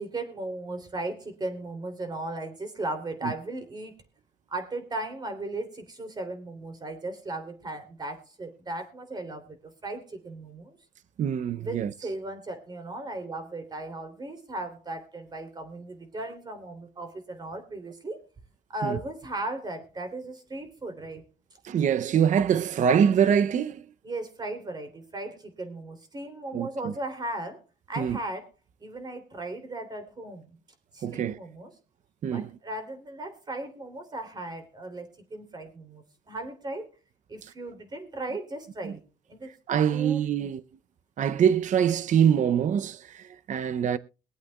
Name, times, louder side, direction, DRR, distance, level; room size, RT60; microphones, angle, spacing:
voice 1, 0.0-3.9 4.5-10.8 11.6-18.2 18.7-21.3 24.0-27.6 27.9-28.5 28.8-30.6 30.9-31.7 32.3-36.9 37.3-39.0 39.3-39.5 39.9-40.5, right 2 dB, 25° right, 3.2 m, -37 dB
voice 2, 11.2-11.9 18.8-19.0 21.6-23.9 26.5-26.9 28.0-28.2 31.0-31.4 32.2-32.5 38.8-38.9 39.7-40.6 41.2-44.0, right 8 dB, 45° right, 0.7 m, -24 dB
23.0 x 8.3 x 2.3 m
cardioid pair, 110°, 17 cm